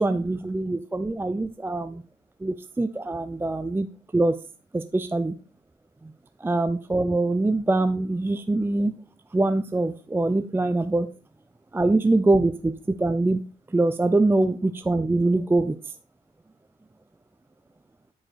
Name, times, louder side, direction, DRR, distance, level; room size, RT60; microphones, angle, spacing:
voice 1, 0.0-2.0 2.4-3.9 4.1-4.4 4.7-5.3 6.0-6.1 6.4-9.0 9.3-11.1 11.7-13.4 13.7-15.8, right 2 dB, 10° right, 11 dB, 0.5 m, -23 dB
9.0 x 5.0 x 4.0 m, 0.34 s
cardioid pair, 90°, 20 cm